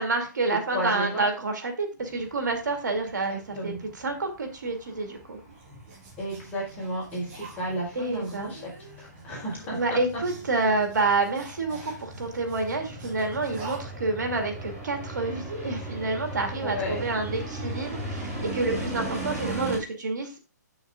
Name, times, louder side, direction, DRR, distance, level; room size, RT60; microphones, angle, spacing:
voice 1, 0.0-5.4 8.0-8.5 9.7-20.4, right 3 dB, 75° right, 5 dB, 2.2 m, -28 dB
voice 2, 0.7-1.2 3.3-3.8 6.2-8.6 9.0-10.0 11.8-11.9 16.6-17.1, equal, 15° left, -4 dB, 4.7 m, -33 dB
sound 1, 2.0-19.8, right 1 dB, 20° right, 3.1 m, -38 dB
sound 2, 5.1-13.8, right 3 dB, 35° right, 2.9 m, -47 dB
7.8 x 6.3 x 3.7 m, 0.32 s
hypercardioid pair, 150°, 10 cm